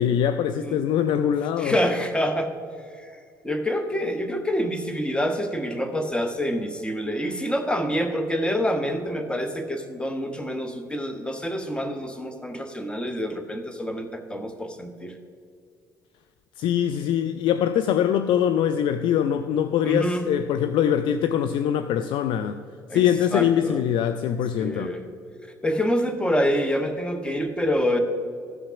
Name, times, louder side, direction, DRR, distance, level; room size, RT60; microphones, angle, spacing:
voice 1, 0.0-1.8 16.6-22.6 22.9-25.0, left 9 dB, 55° left, 0.4 m, -23 dB
voice 2, 1.6-2.5 3.0-3.1 3.4-15.1 19.8-20.3 22.9-23.0 23.3-23.8 24.6-25.0 25.6-28.0, equal, 10° left, 1.2 m, -26 dB
14.0 x 5.8 x 5.7 m
figure-of-eight pair, 50°, 10 cm